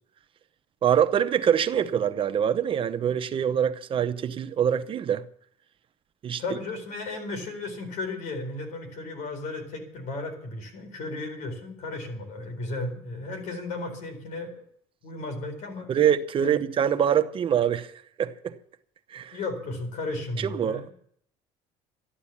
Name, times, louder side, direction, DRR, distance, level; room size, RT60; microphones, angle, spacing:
voice 1, 0.8-5.2 6.2-6.4 15.9-17.9 18.2-18.5 19.1-19.4 20.4-20.9, right 9 dB, 40° right, 0.8 m, -24 dB
voice 2, 6.4-14.6 15.0-15.9 16.4-16.5 19.3-20.9, left 2 dB, 60° left, 4.3 m, -34 dB
13.5 x 11.5 x 7.2 m
cardioid pair, 125°, 14 cm